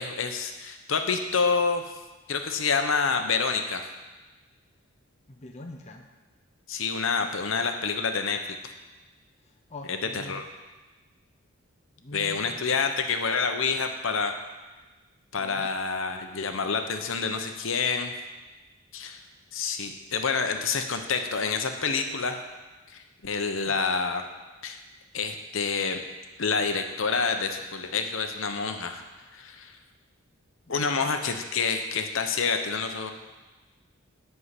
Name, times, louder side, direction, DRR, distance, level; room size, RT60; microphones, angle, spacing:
voice 1, 0.0-1.8 2.3-3.9 6.7-8.4 9.9-10.4 12.1-14.3 15.3-18.1 18.9-19.2 19.5-22.4 22.9-24.2 24.6-24.8 25.1-26.0 26.4-29.0 29.3-29.8 30.7-33.1, left 5 dB, 65° left, 6 dB, 0.9 m, -28 dB
voice 2, 5.3-6.1 9.4-10.4 12.0-12.7 15.3-15.7 23.7-23.9 30.7-31.1, left 2 dB, 30° left, 2 dB, 0.7 m, -44 dB
11.0 x 4.6 x 8.2 m, 1.2 s
head